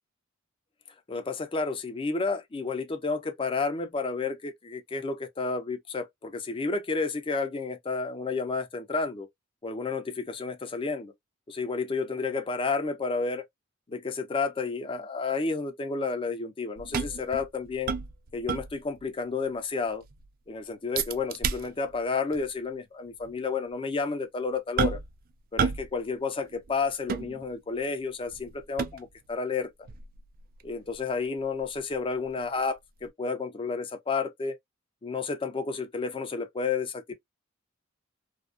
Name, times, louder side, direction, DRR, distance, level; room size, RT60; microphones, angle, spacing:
voice 1, 1.1-9.3 9.6-11.1 11.5-13.4 13.9-17.9 18.3-20.0 20.5-25.0 25.5-29.7 30.6-34.6 35.0-37.1, left 4 dB, 25° left, 0.4 m, -31 dB
sound 1, 16.8-19.1 19.4-19.5 19.9-20.3 20.9-22.0 22.3-22.5 23.2-23.3 24.8-25.2 25.6-26.0 26.2-27.8 28.3-29.3 29.9-32.6 33.0-33.1, right 6 dB, 45° right, 0.3 m, -32 dB
2.4 x 2.1 x 2.4 m
head